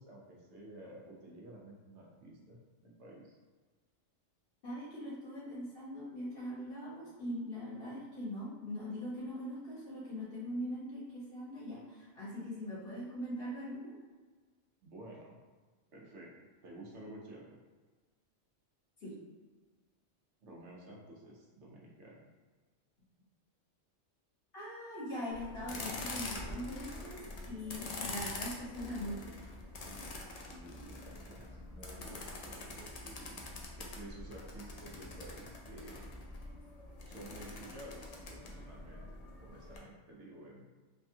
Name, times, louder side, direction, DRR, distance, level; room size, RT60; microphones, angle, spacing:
voice 1, 0.0-3.4 14.8-15.4 15.9-16.3 16.6-17.6 20.4-22.3 30.5-33.4 33.8-36.1 37.1-40.7, right 1 dB, 75° right, -2 dB, 1.0 m, -52 dB
voice 2, 4.6-14.0 19.0-19.1 24.5-29.3, equal, 50° left, -8 dB, 1.2 m, -41 dB
sound 1, 25.3-39.8, left 2 dB, 80° left, 0.3 m, -45 dB
3.4 x 2.2 x 2.6 m, 1.4 s
omnidirectional pair, 1.3 m